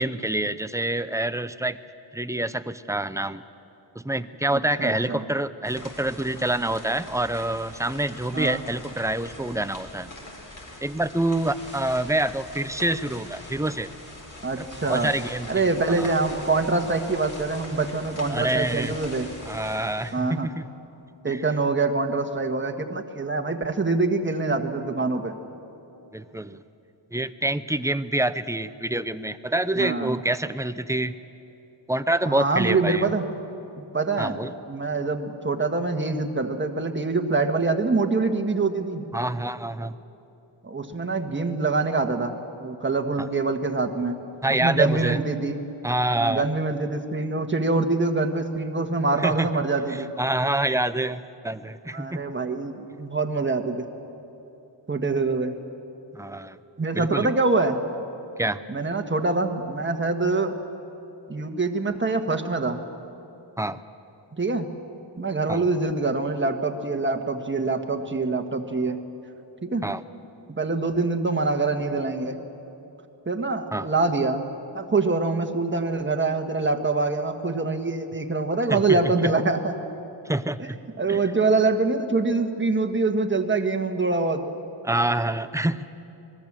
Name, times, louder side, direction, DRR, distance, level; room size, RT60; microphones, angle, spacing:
voice 1, 0.0-1.8 2.1-3.4 4.0-10.1 10.8-13.9 14.6-15.5 15.9-16.1 18.3-19.0 19.5-20.7 21.3-21.4 26.1-26.6 27.1-31.1 31.9-33.1 34.2-34.5 39.1-40.0 44.4-45.2 45.8-46.4 49.2-49.6 50.2-52.2 56.1-56.6 56.9-57.3 58.4-58.6 63.6-63.8 65.5-65.6 69.8-70.0 73.7-73.9 78.7-79.3 80.3-80.8 81.1-81.2 84.8-85.9, right 1 dB, 5° right, 13 dB, 0.5 m, -26 dB
voice 2, 4.5-5.3 8.3-8.6 14.4-15.1 15.5-19.3 20.1-20.5 21.2-25.3 29.8-30.2 32.2-33.3 33.8-39.0 40.6-44.2 44.6-45.6 46.2-50.1 51.9-53.8 54.9-55.5 56.8-57.8 58.7-60.5 61.3-62.8 64.3-64.7 65.2-69.0 69.6-69.9 70.5-72.4 73.2-74.4 74.7-79.8 80.6-84.4, right 3 dB, 25° right, 5 dB, 1.5 m, -25 dB
sound 1, 5.6-19.7, left 1 dB, 40° left, 4.2 m, -43 dB
sound 2, 11.3-20.1, left 1 dB, 25° left, 7.9 m, -47 dB
26.0 x 20.0 x 7.5 m, 3.0 s
wide cardioid pair, 125°, 45 cm